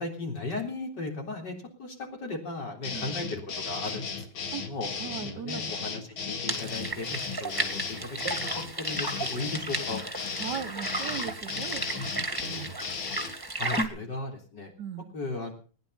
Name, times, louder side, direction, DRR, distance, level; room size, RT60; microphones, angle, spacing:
voice 1, 0.0-4.9 5.3-10.0 13.6-14.7 15.1-15.5, left 3 dB, 55° left, 2 dB, 4.3 m, -36 dB
sound 1, 2.8-13.3, left 5 dB, 85° left, 2.7 m, -35 dB
voice 2, 5.0-5.6 10.4-11.8 12.2-12.7 14.8-15.1, right 9 dB, 65° right, 13 dB, 1.4 m, -38 dB
sound 2, 6.5-13.9, right 2 dB, 10° right, 1.8 m, -34 dB
20.0 x 10.5 x 5.7 m, 0.39 s
omnidirectional pair, 2.2 m